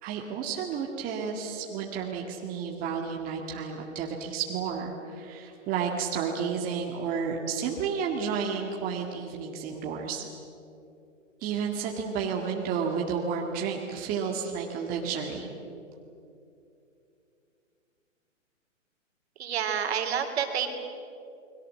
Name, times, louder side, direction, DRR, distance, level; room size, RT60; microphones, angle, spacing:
voice 1, 0.0-10.2 11.4-15.5, right 6 dB, 20° right, 0 dB, 1.9 m, -31 dB
voice 2, 19.4-20.7, right 8 dB, 55° right, 5 dB, 3.4 m, -29 dB
29.0 x 22.0 x 7.6 m, 2.8 s
hypercardioid pair, 145°, 39 cm